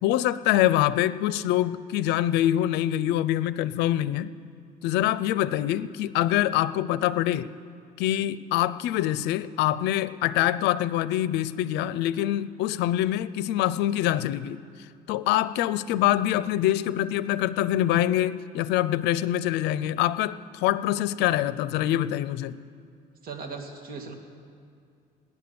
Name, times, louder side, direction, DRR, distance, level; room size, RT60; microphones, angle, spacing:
voice 1, 0.0-4.3 4.8-7.5 8.0-14.6 15.1-22.6, left 13 dB, 90° left, 17 dB, 0.5 m, -25 dB
voice 2, 23.2-24.1, right 4 dB, 60° right, 2 dB, 2.2 m, -38 dB
18.5 x 11.0 x 6.9 m, 2.4 s
cardioid pair, 110°, 17 cm